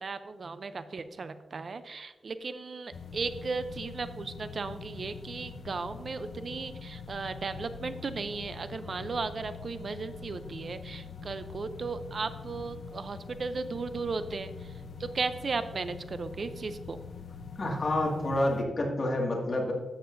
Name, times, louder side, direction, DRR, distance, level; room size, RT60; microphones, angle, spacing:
voice 1, 0.0-14.5 15.0-17.0, right 4 dB, 50° right, 11 dB, 0.4 m, -36 dB
sound 1, 2.9-18.6, left 5 dB, 70° left, 0.6 m, -44 dB
voice 2, 17.6-19.7, left 1 dB, 45° left, -1 dB, 1.9 m, -28 dB
12.5 x 7.4 x 2.6 m, 1.3 s
wide cardioid pair, 135°, 0 cm